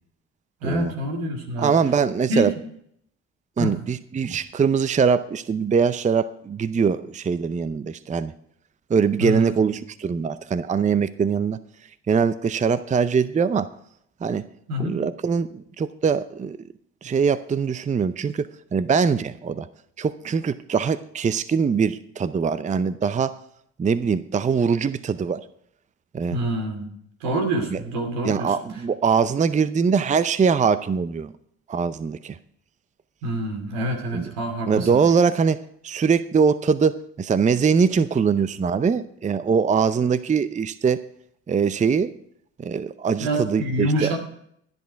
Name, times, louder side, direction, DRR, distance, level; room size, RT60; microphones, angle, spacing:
voice 1, 0.6-1.8 2.3-2.5 3.6-3.7 9.2-9.5 14.7-15.0 26.3-26.9 27.2-28.5 33.2-35.0 43.2-44.2, right 1 dB, 80° right, 3 dB, 2.7 m, -26 dB
voice 2, 1.6-2.5 3.6-8.3 8.9-11.6 12.1-13.7 14.2-14.5 14.8-16.6 17.0-19.7 20.0-23.4 23.8-25.4 26.1-26.4 27.7-27.8 28.2-31.3 31.7-32.4 34.1-34.3 34.7-41.0 41.5-42.1 42.6-44.1, right 6 dB, 20° right, 16 dB, 0.6 m, -22 dB
13.5 x 10.5 x 4.6 m, 0.70 s
hypercardioid pair, 60°, 34 cm